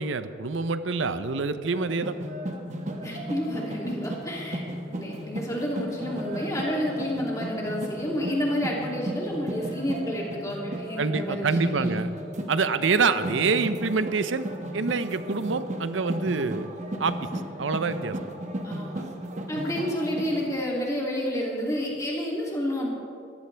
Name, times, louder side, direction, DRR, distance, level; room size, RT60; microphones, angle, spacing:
voice 1, 0.0-2.1 11.0-12.1 12.5-14.5 14.7-16.7 17.0-17.2 17.6-18.2, right 4 dB, 85° right, 11 dB, 0.7 m, -26 dB
sound 1, 1.7-20.4, right 1 dB, 40° right, 1.3 m, -35 dB
voice 2, 3.0-11.9 18.6-19.0 19.5-22.9, equal, 15° left, -3 dB, 2.7 m, -30 dB
21.0 x 15.0 x 3.4 m, 2.5 s
head